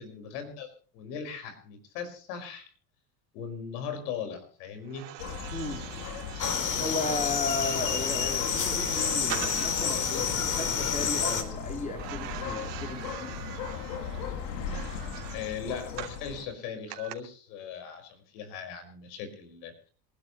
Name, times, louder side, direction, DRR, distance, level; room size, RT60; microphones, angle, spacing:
voice 1, 0.0-2.7 3.3-5.1 15.3-19.9, left 7 dB, 75° left, 7 dB, 5.3 m, -39 dB
sound 1, 4.9-10.0 11.9-16.2 16.9-17.1, right 14 dB, 60° right, 3.0 m, -43 dB
sound 2, 5.2-16.5, left 6 dB, 90° left, 3.3 m, -37 dB
voice 2, 5.5-5.9 6.8-13.3, left 2 dB, 15° left, 4 dB, 4.3 m, -35 dB
sound 3, 6.4-11.4, left 6 dB, 40° left, 4.4 m, -29 dB
27.0 x 11.5 x 3.1 m, 0.41 s
supercardioid pair, 90°, 48 cm